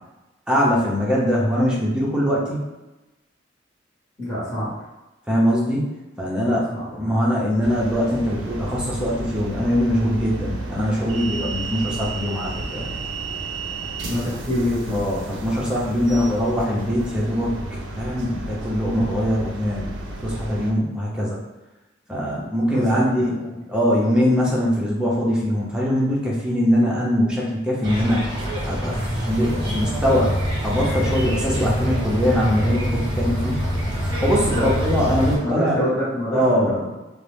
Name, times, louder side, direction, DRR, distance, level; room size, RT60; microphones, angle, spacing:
voice 1, 0.5-2.6 5.3-5.9 6.2-6.6 7.0-12.9 14.9-17.6 18.0-19.9 20.2-21.4 22.1-23.4 23.7-28.3 28.6-30.3 30.6-33.6 34.2-35.8 36.3-36.8, equal, 5° right, -5 dB, 0.5 m, -22 dB
voice 2, 4.2-4.9 6.4-7.0 14.0-15.0 16.1-16.5 22.3-23.6 34.5-34.7 35.4-36.9, left 1 dB, 15° left, -12 dB, 0.9 m, -27 dB
sound 1, 7.6-20.7, right 2 dB, 75° right, 0.4 m, -32 dB
sound 2, 27.8-35.4, equal, 25° right, 0.9 m, -25 dB
2.6 x 2.0 x 3.2 m, 1.1 s
head